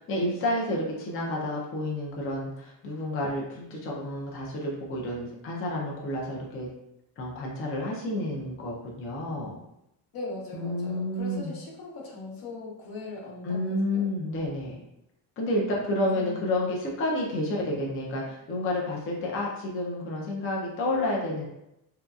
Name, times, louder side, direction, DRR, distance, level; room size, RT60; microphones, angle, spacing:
voice 1, 0.1-6.7 7.2-9.6 10.5-11.5 13.4-14.8 15.4-21.5, left 1 dB, 30° left, -2 dB, 0.5 m, -30 dB
voice 2, 10.1-14.0 16.1-16.5, left 2 dB, 55° left, -3 dB, 0.9 m, -40 dB
2.7 x 2.3 x 2.3 m, 0.84 s
cardioid pair, 140°, 41 cm